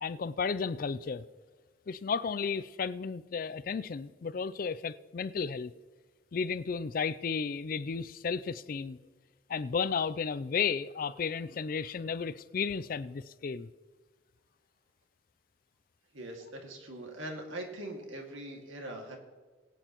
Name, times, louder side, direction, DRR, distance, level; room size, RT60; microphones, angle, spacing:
voice 1, 0.0-1.2 1.9-5.7 6.3-9.0 9.5-13.7, left 5 dB, 45° left, 16 dB, 0.4 m, -33 dB
voice 2, 16.1-19.2, right 1 dB, 85° right, 2 dB, 2.1 m, -42 dB
21.5 x 8.9 x 3.0 m, 1.4 s
head